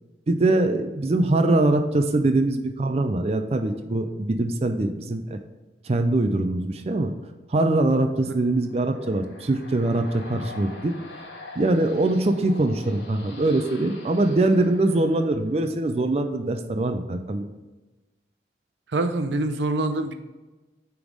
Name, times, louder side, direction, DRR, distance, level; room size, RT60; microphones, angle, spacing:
voice 1, 0.3-5.4 5.8-7.1 7.5-10.9 11.6-17.5, right 2 dB, 35° right, 6 dB, 0.4 m, -23 dB
sound 1, 8.3-15.8, left 2 dB, 90° left, 1.3 m, -44 dB
voice 2, 18.9-20.1, right 2 dB, 85° right, 8 dB, 0.6 m, -25 dB
8.9 x 3.6 x 4.8 m, 1.2 s
head